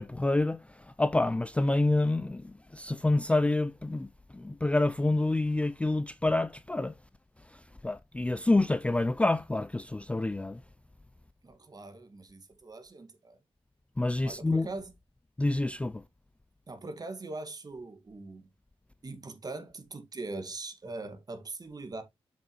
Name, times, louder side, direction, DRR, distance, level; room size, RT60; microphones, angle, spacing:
voice 1, 0.0-6.9 7.5-10.6 14.0-14.7 15.4-16.0, left 2 dB, 10° left, 0.3 m, -28 dB
voice 2, 11.4-13.4 14.2-14.9 16.7-18.5 19.0-22.0, right 3 dB, 40° right, 1.8 m, -41 dB
7.2 x 5.7 x 3.0 m
cardioid pair, 80°, 10 cm